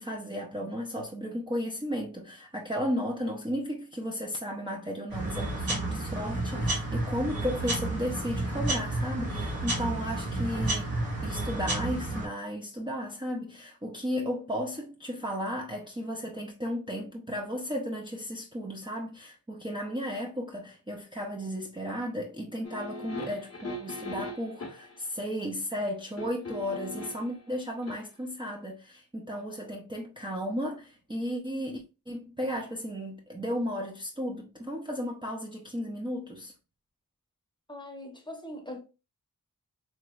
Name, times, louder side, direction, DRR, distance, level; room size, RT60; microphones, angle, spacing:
voice 1, 0.0-10.9 11.2-36.5, equal, 15° right, 0.5 m, -34 dB
sound 1, 5.1-12.3, right 2 dB, 85° right, 1.6 m, -31 dB
sound 2, 22.6-25.0 26.2-27.3 27.8-28.0, left 1 dB, 45° left, 0.8 m, -39 dB
voice 2, 37.7-38.8, left 1 dB, 15° left, 0.9 m, -41 dB
3.1 x 3.0 x 2.3 m
cardioid pair, 50°, 35 cm